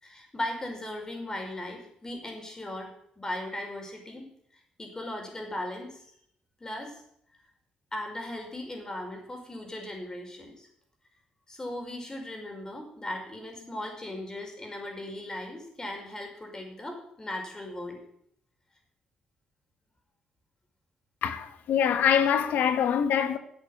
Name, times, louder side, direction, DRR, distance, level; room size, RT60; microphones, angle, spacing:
voice 1, 0.0-4.3 4.8-6.1 6.6-7.0 7.9-10.7 11.5-18.0, left 1 dB, 20° left, 5.3 m, -38 dB
voice 2, 21.2-23.4, left 8 dB, 75° left, 1.4 m, -24 dB
12.5 x 8.1 x 9.8 m
cardioid pair, 90°, 3 cm